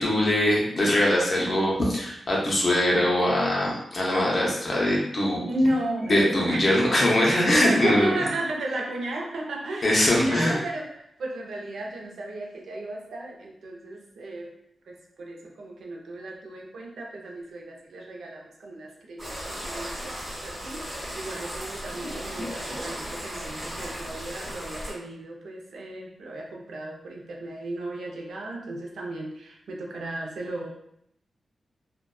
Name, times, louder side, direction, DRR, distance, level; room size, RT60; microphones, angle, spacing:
voice 1, 0.0-5.4 6.1-8.1 9.8-10.6, left 1 dB, 35° left, -3 dB, 0.6 m, -22 dB
voice 2, 5.5-14.5 14.9-20.8 21.1-30.7, right 1 dB, 85° right, 0 dB, 0.5 m, -33 dB
sound 1, 19.2-24.9, equal, 20° right, 1.2 m, -36 dB
2.5 x 2.2 x 2.2 m, 0.74 s
wide cardioid pair, 155°, 0 cm